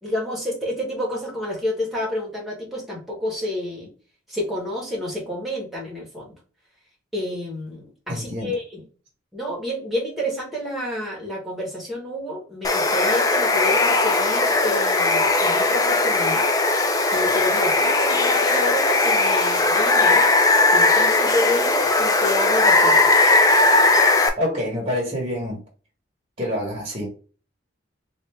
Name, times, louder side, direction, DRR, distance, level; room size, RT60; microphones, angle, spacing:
voice 1, 0.0-3.9 4.3-6.3 7.1-8.8 9.3-16.5 17.1-20.3 20.7-23.1, left 1 dB, ahead, 1.1 m, -29 dB
voice 2, 8.1-8.5 24.4-25.6 26.4-27.1, left 1 dB, 25° right, 1.0 m, -26 dB
Water, 12.6-24.3, left 2 dB, 15° left, 0.3 m, -18 dB
3.3 x 2.5 x 3.3 m
head